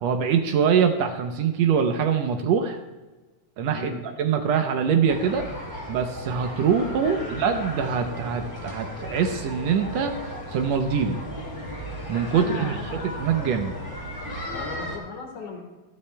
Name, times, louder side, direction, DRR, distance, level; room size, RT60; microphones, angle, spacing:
voice 1, 0.0-2.8 3.6-3.9 4.2-5.4 5.9-10.1 10.5-11.2 12.1-12.8 13.2-13.7, right 7 dB, 75° right, 6 dB, 1.8 m, -23 dB
sound 1, 5.1-15.0, equal, 20° left, 2.3 m, -35 dB
voice 2, 12.3-13.0 14.5-15.6, left 4 dB, 75° left, 2 dB, 2.9 m, -37 dB
15.5 x 13.0 x 2.3 m, 1.2 s
omnidirectional pair, 3.4 m